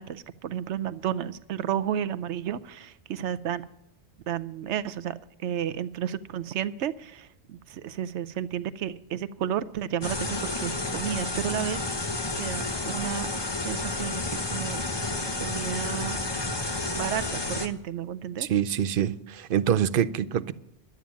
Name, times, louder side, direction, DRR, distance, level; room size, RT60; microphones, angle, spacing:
voice 1, 0.0-3.6 4.3-5.1 5.4-11.8 12.4-13.3 13.5-14.8 15.4-16.2 16.9-18.5, right 10 dB, 85° right, 0.9 m, -32 dB
sound 1, 10.0-17.7, left 2 dB, 25° left, 0.9 m, -31 dB
voice 2, 18.4-20.5, right 9 dB, 60° right, 0.7 m, -25 dB
11.5 x 9.0 x 7.2 m
omnidirectional pair, 1.1 m